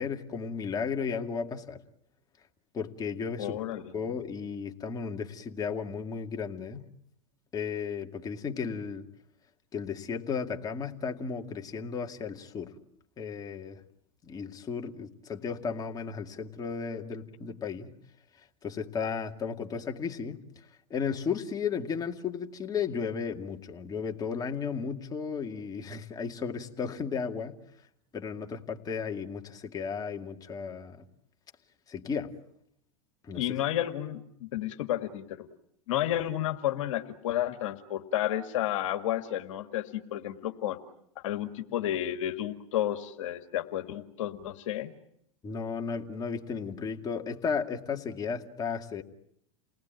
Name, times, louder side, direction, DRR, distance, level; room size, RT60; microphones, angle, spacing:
voice 1, 0.0-1.8 2.7-3.6 3.9-6.9 7.5-9.1 9.7-12.8 13.2-13.8 14.2-17.9 18.6-20.4 20.9-27.6 28.1-31.0 31.9-32.3 33.2-33.4 45.4-49.0, left 6 dB, 20° left, 3 dB, 2.3 m, -34 dB
voice 2, 3.4-4.0 33.3-35.5 35.9-40.8 41.2-44.9, left 12 dB, 70° left, 5 dB, 1.9 m, -31 dB
29.5 x 19.0 x 9.1 m, 0.76 s
hypercardioid pair, 115°, 17 cm